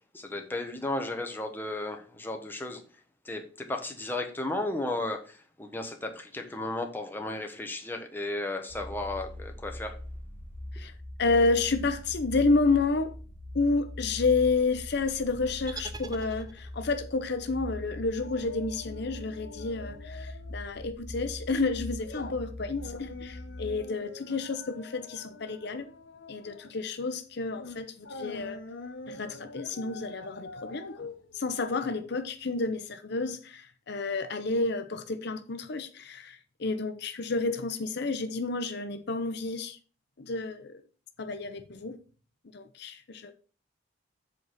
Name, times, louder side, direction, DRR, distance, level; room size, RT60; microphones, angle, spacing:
voice 1, 0.1-2.8 3.2-10.0, left 2 dB, 10° left, 1.1 m, -34 dB
sound 1, 8.7-23.8, left 1 dB, 30° left, 2.4 m, -42 dB
voice 2, 11.2-13.2 13.5-25.9 26.3-28.6 29.1-30.9 31.3-39.8 40.2-40.8 41.2-42.0 42.5-43.3, left 3 dB, 60° left, 0.7 m, -30 dB
sound 2, 15.7-17.0, right 4 dB, 20° right, 0.7 m, -43 dB
sound 3, 18.2-20.6 20.9-21.1 21.5-32.5 32.8-32.9, left 3 dB, 85° left, 1.0 m, -45 dB
7.7 x 4.0 x 6.4 m
head